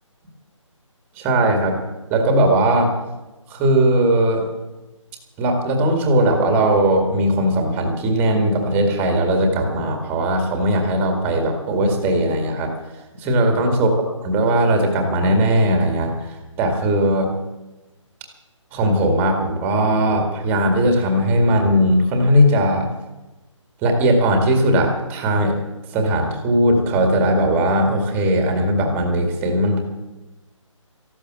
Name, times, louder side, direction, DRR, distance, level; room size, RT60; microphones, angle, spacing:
voice 1, 1.2-1.8 2.1-2.9 3.5-4.4 5.4-12.7 13.2-13.9 14.2-17.3 18.7-22.9 23.8-25.6 25.9-29.8, right 1 dB, 10° right, 3 dB, 2.0 m, -18 dB
14.5 x 12.0 x 7.5 m, 1.0 s
hypercardioid pair, 165°, 17 cm